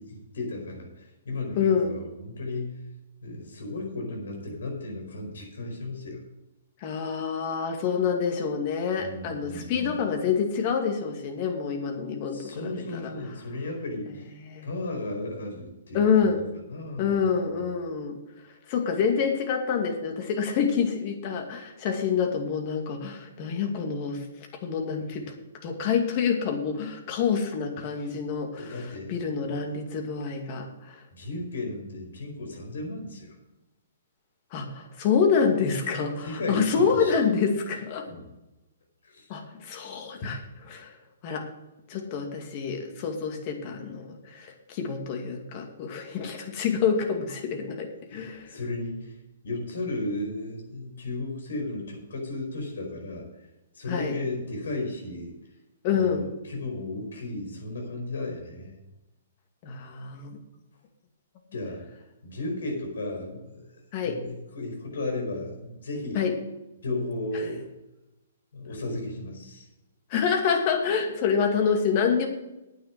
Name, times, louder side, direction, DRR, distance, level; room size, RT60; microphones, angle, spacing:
voice 1, 0.0-2.9 3.2-6.2 9.0-10.0 12.3-14.3 14.6-16.3 16.7-17.2 28.6-29.1 31.1-33.3 36.2-37.1 38.1-38.3 39.0-39.3 48.1-49.1 49.4-53.3 53.7-55.3 55.9-58.8 61.5-61.8 62.2-63.6 64.0-66.2 66.8-67.7 68.5-69.7, left 2 dB, 70° left, 2 dB, 4.9 m, -34 dB
voice 2, 1.5-2.0 6.8-13.1 14.1-14.2 14.4-14.7 15.9-16.4 17.0-18.2 18.7-24.2 24.6-25.3 25.6-31.0 34.5-38.1 39.3-41.0 41.2-41.5 41.9-48.5 53.9-54.2 55.8-56.3 59.6-60.4 63.9-64.2 66.1-66.3 67.3-67.5 70.1-72.3, left 6 dB, 40° left, 3 dB, 2.4 m, -27 dB
9.5 x 9.3 x 6.3 m, 0.97 s
hypercardioid pair, 125°, 0 cm